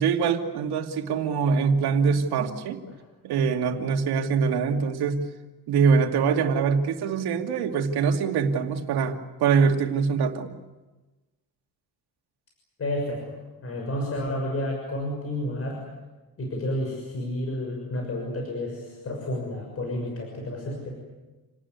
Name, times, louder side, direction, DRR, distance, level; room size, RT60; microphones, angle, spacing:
voice 1, 0.0-2.8 3.2-5.2 5.7-10.5, right 6 dB, 85° right, 4 dB, 2.6 m, -24 dB
voice 2, 12.8-13.4 13.6-15.8 16.4-20.9, left 1 dB, 40° left, 0 dB, 6.5 m, -30 dB
28.5 x 19.0 x 9.7 m, 1.2 s
cardioid pair, 155°, 38 cm